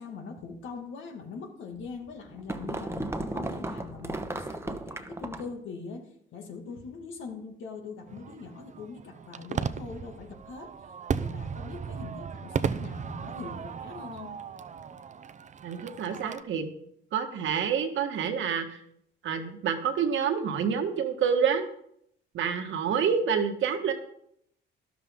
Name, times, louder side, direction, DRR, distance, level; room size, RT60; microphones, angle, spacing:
voice 1, 0.0-6.0 6.3-10.7 11.1-14.4, left 4 dB, 80° left, 3 dB, 2.2 m, -42 dB
sound 1, 1.8-5.6, right 2 dB, 15° right, 1.1 m, -35 dB
Fireworks, 8.1-16.4, right 6 dB, 35° right, 0.7 m, -36 dB
voice 2, 15.6-16.7 17.1-18.8 19.2-21.7 22.3-23.9, right 7 dB, 75° right, 6 dB, 1.6 m, -28 dB
12.5 x 12.0 x 3.7 m, 0.71 s
cardioid pair, 90°, 20 cm